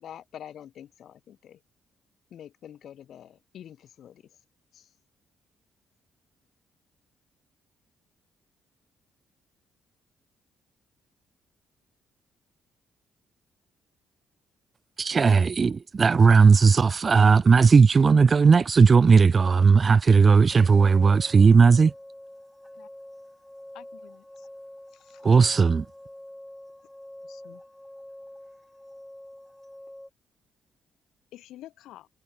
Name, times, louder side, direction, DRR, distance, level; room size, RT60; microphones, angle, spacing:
voice 1, 0.0-1.6 2.3-4.2 4.7-4.9, left 10 dB, 65° left, 3.5 m, -46 dB
sound 1, 13.6-13.7 14.2-14.3 14.5-14.6 14.9-18.7, left 4 dB, 30° left, 6.8 m, -63 dB
voice 2, 15.0-21.9 25.2-25.8, right 5 dB, 35° right, 0.3 m, -17 dB
sound 2, 20.5-30.1, left 1 dB, 5° left, 1.5 m, -46 dB
voice 3, 23.7-24.5 24.9-25.5 27.2-27.6 31.3-32.1, left 14 dB, 85° left, 2.1 m, -49 dB
cardioid pair, 90°, 0 cm